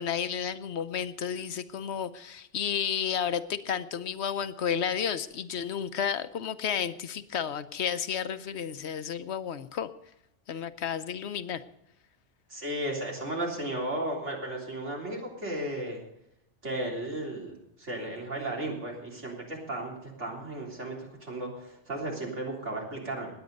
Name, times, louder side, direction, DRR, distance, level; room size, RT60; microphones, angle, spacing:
voice 1, 0.0-9.9 10.5-11.6, left 8 dB, 70° left, 12 dB, 1.0 m, -32 dB
voice 2, 12.5-16.0 16.6-23.3, right 1 dB, 80° right, -2 dB, 3.8 m, -35 dB
19.0 x 9.1 x 5.3 m, 0.81 s
omnidirectional pair, 1.2 m